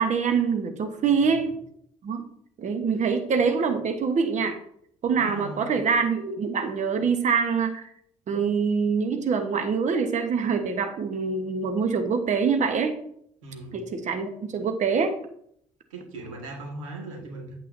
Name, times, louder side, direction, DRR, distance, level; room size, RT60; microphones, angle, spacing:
voice 1, 0.0-1.5 2.0-2.2 2.6-4.6 5.0-7.9 8.3-12.9 13.7-15.1, right 5 dB, 50° right, 7 dB, 1.2 m, -25 dB
voice 2, 1.0-1.5 5.2-5.8 13.4-13.8 15.9-17.6, right 2 dB, 85° right, 0 dB, 1.8 m, -39 dB
8.4 x 8.3 x 2.7 m, 0.68 s
hypercardioid pair, 50°, 16 cm